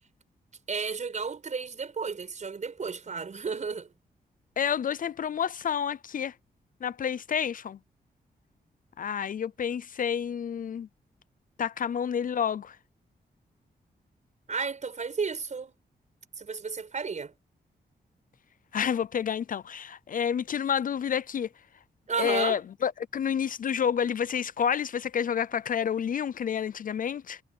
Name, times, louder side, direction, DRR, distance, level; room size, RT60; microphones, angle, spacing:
voice 1, 0.7-3.9 14.5-15.7 16.4-17.3 22.1-22.6, right 5 dB, 45° right, 6.0 m, -32 dB
voice 2, 4.6-6.3 6.8-7.8 9.0-10.9 11.6-12.8 18.7-21.5 22.2-27.4, left 8 dB, 55° left, 0.5 m, -29 dB
wide cardioid pair, 115°, 17 cm